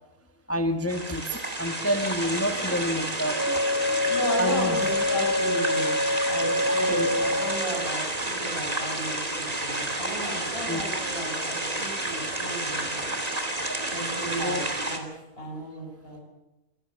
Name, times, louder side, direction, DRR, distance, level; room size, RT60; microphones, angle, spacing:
voice 1, 0.5-3.6 4.4-4.8 6.8-7.1 10.7-10.8 14.4-14.6, equal, 10° left, 7 dB, 1.3 m, -28 dB
sound 1, 0.9-15.0, right 2 dB, 25° right, 2.9 m, -30 dB
Wind instrument woodwind instrument, 3.3-7.9, left 2 dB, 65° left, 8.2 m, -26 dB
voice 2, 4.1-6.0 6.2-8.0 8.4-13.1 13.9-14.6 14.9-15.1 15.4-16.2, equal, 40° left, -3 dB, 7.5 m, -34 dB
26.5 x 15.0 x 7.6 m, 0.96 s
omnidirectional pair, 1.5 m